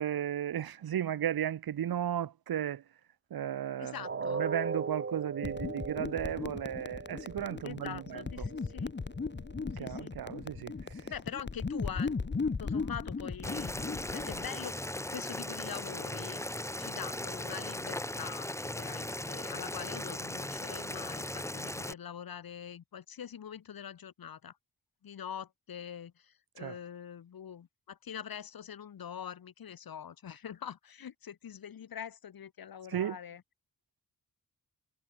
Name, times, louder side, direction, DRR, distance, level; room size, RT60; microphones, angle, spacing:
voice 1, 0.0-2.8 3.3-3.9 4.4-8.2 9.8-10.7 26.6-26.7 32.9-33.1, right 10 dB, 85° right, 1.7 m, -34 dB
voice 2, 3.8-4.4 7.6-9.0 9.7-10.2 11.1-16.4 16.8-24.6 25.0-33.4, left 8 dB, 80° left, 6.1 m, -44 dB
sound 1, 4.0-10.0 10.4-10.6 11.1-11.2, right 5 dB, 35° right, 5.2 m, -40 dB
sound 2, 5.4-14.5, left 4 dB, 30° left, 5.1 m, -37 dB
Boiling, 13.4-21.9, left 1 dB, 10° left, 3.5 m, -38 dB
wide cardioid pair, 160°, 35 cm